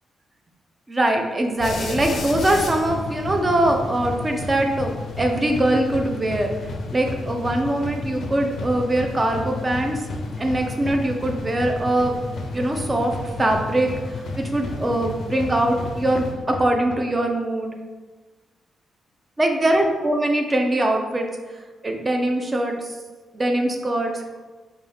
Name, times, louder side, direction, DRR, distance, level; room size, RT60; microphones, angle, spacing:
voice 1, 0.9-6.5 6.9-10.0 10.4-12.1 12.5-13.1 13.4-17.7 19.4-21.3 21.8-22.8 23.3-24.2, right 1 dB, 20° right, 3 dB, 0.4 m, -22 dB
sound 1, 1.6-17.0, left 2 dB, 55° left, 0.5 m, -32 dB
4.2 x 2.3 x 3.3 m, 1.3 s
cardioid pair, 145°, 0 cm